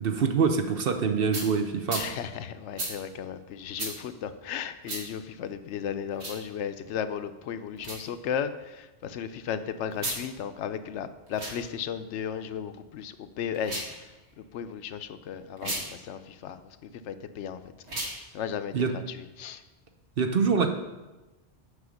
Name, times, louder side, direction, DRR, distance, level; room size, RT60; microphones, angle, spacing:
voice 1, 0.0-2.0 18.7-18.9 20.2-20.7, right 5 dB, 60° right, 6 dB, 0.9 m, -25 dB
sound 1, 1.3-1.5 1.9-2.1 2.8-2.9 3.8-3.9 4.8-5.0 6.1-6.4 7.8-8.0 9.9-10.2 11.3-11.6 13.5-13.9 15.6-15.8 17.8-18.2, right 2 dB, 75° right, 1.9 m, -34 dB
voice 2, 2.0-14.0 14.5-16.6 17.1-17.6 18.3-19.6, left 8 dB, 85° left, 11 dB, 0.9 m, -35 dB
8.4 x 4.9 x 6.4 m, 1.1 s
omnidirectional pair, 1.2 m